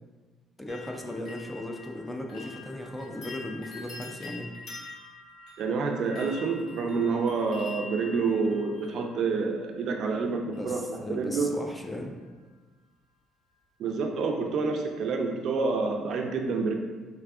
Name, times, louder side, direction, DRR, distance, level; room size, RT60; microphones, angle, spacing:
voice 1, 0.6-4.5 10.4-12.1, left 1 dB, 10° left, 2 dB, 0.4 m, -37 dB
sound 1, 0.7-9.6 10.5-11.1 11.3-11.9 12.2-12.3, left 3 dB, 55° left, 0.9 m, -46 dB
voice 2, 5.6-10.8 11.1-11.5 13.8-16.7, right 4 dB, 55° right, 3 dB, 0.4 m, -28 dB
4.6 x 3.3 x 2.4 m, 1.4 s
cardioid pair, 140°, 0 cm